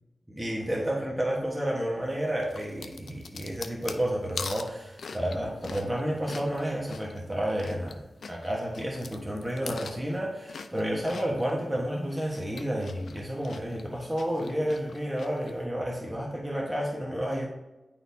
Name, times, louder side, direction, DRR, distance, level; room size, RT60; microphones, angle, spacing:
voice 1, 0.3-17.5, equal, 20° right, -2 dB, 1.3 m, -31 dB
sound 1, 2.4-7.9 8.2-11.5 12.0-15.5, left 5 dB, 90° left, 0.4 m, -42 dB
10.0 x 4.2 x 2.8 m, 1.0 s
wide cardioid pair, 65°, 0 cm